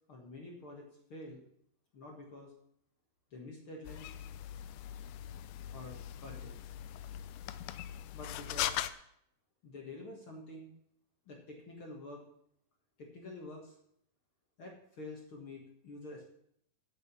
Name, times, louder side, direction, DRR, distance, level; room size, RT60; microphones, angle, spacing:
voice 1, 0.1-1.4 1.9-2.5 3.3-4.1 5.7-6.5 8.1-8.8 9.6-10.7 11.3-12.2 13.0-13.7 14.6-16.3, left 2 dB, 45° left, 0 dB, 1.9 m, -48 dB
sound 1, 3.8-8.9, left 12 dB, 85° left, 2.5 m, -40 dB
10.5 x 6.1 x 8.4 m, 0.70 s
omnidirectional pair, 4.4 m